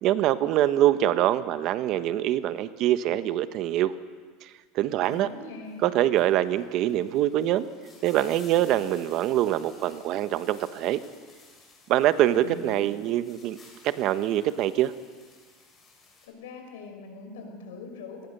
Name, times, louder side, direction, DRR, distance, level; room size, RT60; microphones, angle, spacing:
voice 1, 0.0-3.9 4.4-5.3 5.8-7.7 8.0-11.0 11.9-13.6 13.8-14.9, right 13 dB, 50° right, 12 dB, 1.1 m, -24 dB
voice 2, 5.0-5.9 12.3-12.9 16.2-18.3, left 4 dB, 90° left, 4 dB, 5.7 m, -42 dB
sound 1, 5.0-5.2 5.7-16.3, left 3 dB, 20° left, 7.7 m, -55 dB
25.0 x 19.0 x 6.8 m, 1.5 s
supercardioid pair, 125°, 0 cm